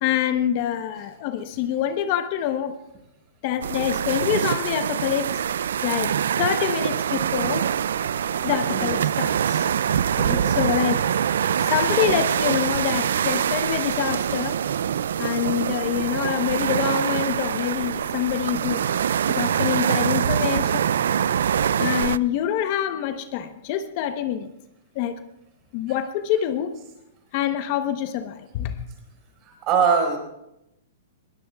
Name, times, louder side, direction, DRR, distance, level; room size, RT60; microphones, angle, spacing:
voice 1, 0.0-2.8 3.4-5.4 5.8-7.7 8.4-9.7 10.2-11.1 11.6-14.6 15.2-18.8 19.3-20.8 21.8-24.5 24.9-25.2 25.7-26.8 27.3-28.8, left 10 dB, 45° left, 9 dB, 0.9 m, -26 dB
sound 1, 3.6-22.2, right 8 dB, 80° right, 0.4 m, -24 dB
voice 2, 10.1-10.4 12.0-12.2 29.4-30.2, right 6 dB, 35° right, 1 dB, 4.9 m, -23 dB
21.0 x 16.5 x 2.3 m, 0.85 s
hypercardioid pair, 145°, 0 cm